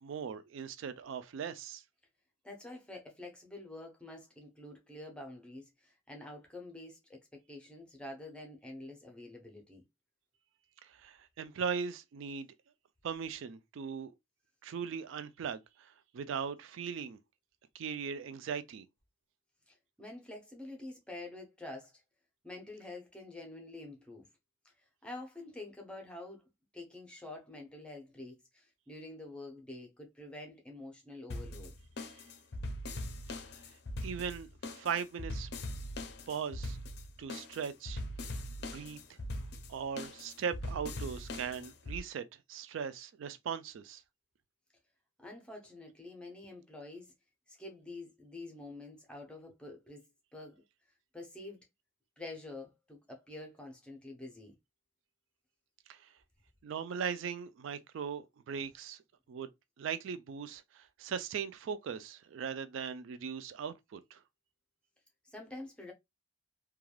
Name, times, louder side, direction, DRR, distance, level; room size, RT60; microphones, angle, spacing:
voice 1, 0.0-1.8 10.8-12.5 13.0-14.1 14.6-17.2 17.7-18.9 34.0-35.5 36.3-36.8 37.2-38.0 38.7-39.0 39.7-44.0 55.9-56.0 56.6-59.0 59.3-59.5 59.8-64.2, right 6 dB, 75° right, 0.3 m, -39 dB
voice 2, 2.4-9.8 19.7-22.0 22.4-24.3 24.6-24.7 25.0-26.4 26.7-31.7 45.2-47.1 47.5-50.0 50.3-50.6 51.1-51.6 52.2-54.5 65.2-65.9, left 2 dB, 5° left, 0.7 m, -47 dB
sound 1, 31.3-42.0, left 1 dB, 55° left, 0.5 m, -41 dB
3.2 x 2.3 x 2.2 m
head